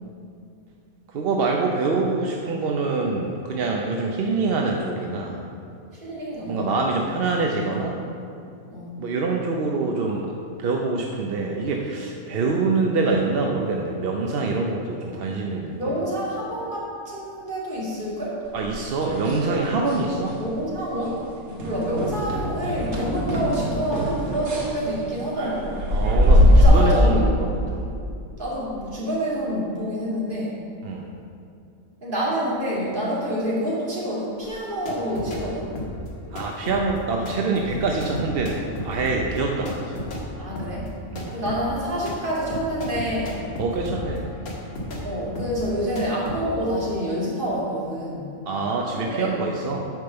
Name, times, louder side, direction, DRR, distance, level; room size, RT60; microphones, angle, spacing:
voice 1, 1.1-5.4 6.5-8.0 9.0-10.3 10.6-15.9 18.5-20.4 25.9-27.9 30.8-31.1 36.3-40.0 41.1-41.3 43.6-44.3 48.5-49.9, right 3 dB, 55° right, 1 dB, 0.7 m, -25 dB
voice 2, 5.9-6.9 8.7-9.0 12.3-12.4 15.8-18.4 20.4-25.7 26.3-27.3 28.4-30.6 32.0-35.7 40.4-40.9 41.3-43.4 45.0-48.3 48.9-49.3, equal, 35° right, -6 dB, 2.5 m, -27 dB
sound 1, 18.6-20.0 20.3-20.7 21.0-21.1 21.6-26.6, equal, 75° right, 1.7 m, -22 dB
sound 2, 34.4-35.5 35.7-45.1 45.3-45.7 45.9-46.4, left 1 dB, 90° left, 2.0 m, -34 dB
9.4 x 5.1 x 6.8 m, 2.5 s
omnidirectional pair, 1.5 m